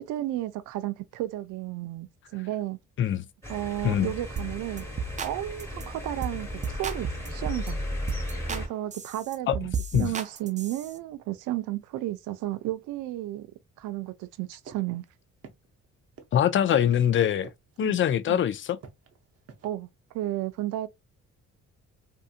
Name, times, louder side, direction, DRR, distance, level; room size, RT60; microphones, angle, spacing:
voice 1, 0.0-2.8 3.5-4.8 5.2-7.9 8.5-13.5 13.8-15.0 17.8-18.0 18.3-18.4 19.6-20.9, right 15 dB, 85° right, 0.5 m, -33 dB
sound 1, 3.4-8.7, left 1 dB, 10° left, 1.2 m, -35 dB
sound 2, 4.4-4.5 4.8-5.3 5.6-5.8 6.2-6.4 6.6-7.7 8.1-8.6 8.9-10.9, right 5 dB, 25° right, 0.4 m, -34 dB
sound 3, 14.7-14.8 15.1-15.2 15.4-15.9 16.2-16.9 17.4-17.8 18.1-18.3 18.8-19.7, right 6 dB, 50° right, 0.7 m, -46 dB
voice 2, 16.3-17.5 17.8-18.8, left 10 dB, 40° left, 0.4 m, -23 dB
2.7 x 2.5 x 2.4 m
cardioid pair, 90°, 30 cm